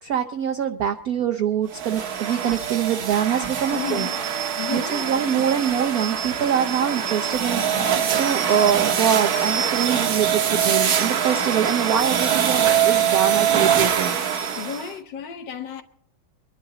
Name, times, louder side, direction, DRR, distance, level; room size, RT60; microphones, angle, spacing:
voice 1, 0.0-4.1 4.7-7.6 8.2-14.1, right 9 dB, 70° right, 0.8 m, -24 dB
sound 1, 1.7-14.9, right 8 dB, 55° right, 1.2 m, -23 dB
voice 2, 3.7-4.2 4.6-5.5 14.6-15.8, left 8 dB, 60° left, 1.5 m, -33 dB
23.5 x 11.0 x 3.9 m
omnidirectional pair, 2.3 m